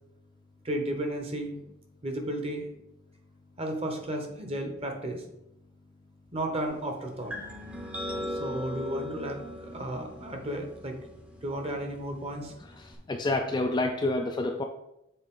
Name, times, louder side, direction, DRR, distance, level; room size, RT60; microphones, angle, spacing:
voice 1, 0.6-1.6 2.0-2.7 3.6-5.2 6.3-7.3 8.3-11.0 11.4-12.5, right 1 dB, 30° right, 3 dB, 0.9 m, -33 dB
sound 1, 7.3-13.0, left 1 dB, 5° right, 0.7 m, -40 dB
voice 2, 12.8-14.6, left 2 dB, 20° left, 3 dB, 0.3 m, -28 dB
7.2 x 3.9 x 3.7 m, 0.84 s
head